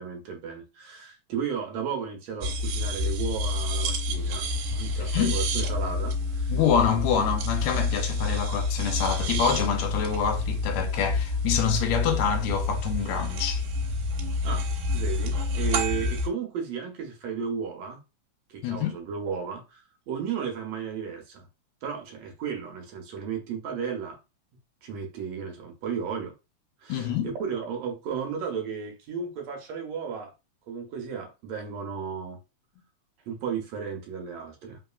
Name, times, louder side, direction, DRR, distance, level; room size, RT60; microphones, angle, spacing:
voice 1, 0.0-6.6 14.4-14.7 14.9-18.0 18.5-21.5 21.8-24.2 24.8-26.3 26.8-30.3 30.7-32.4 33.3-34.8, right 6 dB, 70° right, 1.8 m, -34 dB
sound 1, 2.4-16.3, left 2 dB, 85° right, 2.4 m, -28 dB
voice 2, 5.1-5.4 6.5-13.6 18.6-18.9 26.9-27.3, left 7 dB, 75° left, 1.8 m, -26 dB
4.0 x 3.6 x 2.3 m
omnidirectional pair, 3.5 m